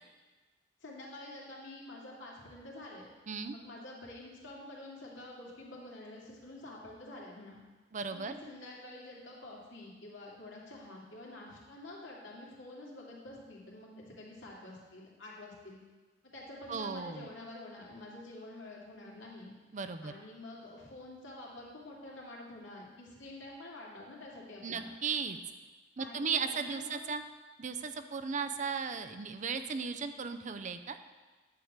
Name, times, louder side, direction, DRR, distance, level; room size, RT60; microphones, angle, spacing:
voice 1, 0.8-3.1 3.5-7.6 8.1-15.8 16.3-19.5 20.0-24.9 26.0-27.0, left 2 dB, 80° left, -4 dB, 2.6 m, -48 dB
voice 2, 7.9-8.3 16.7-17.3 19.7-20.1 24.6-25.4 26.0-27.2 27.6-31.0, right 5 dB, 40° right, 9 dB, 0.5 m, -36 dB
10.5 x 4.8 x 7.3 m, 1.3 s
head